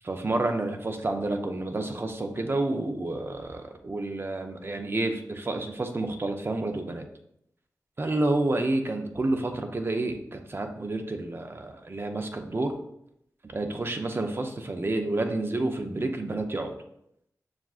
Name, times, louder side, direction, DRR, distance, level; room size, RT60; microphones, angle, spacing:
voice 1, 0.0-7.0 8.0-12.7 13.5-16.8, right 2 dB, 35° right, 5 dB, 0.5 m, -29 dB
6.7 x 2.4 x 2.4 m, 0.77 s
wide cardioid pair, 65°, 7 cm